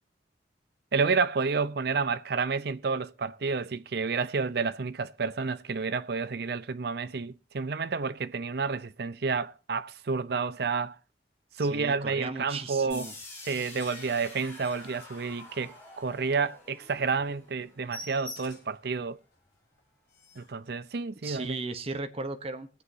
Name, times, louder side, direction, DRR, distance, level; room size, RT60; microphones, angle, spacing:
voice 1, 0.9-11.0 11.6-13.1 13.5-19.2 20.4-21.6, right 4 dB, 60° right, 0.6 m, -30 dB
voice 2, 11.6-13.1 21.2-22.8, right 3 dB, 35° right, 0.9 m, -36 dB
sound 1, 12.9-18.8, left 2 dB, 15° left, 3.8 m, -48 dB
sound 2, 13.7-15.8 16.2-16.4 16.7-16.8 17.1-17.3 17.5-18.8 19.3-19.4 19.8-19.9 20.1-20.6 21.3-21.5, left 2 dB, 55° left, 5.1 m, -47 dB
23.0 x 8.0 x 2.7 m
head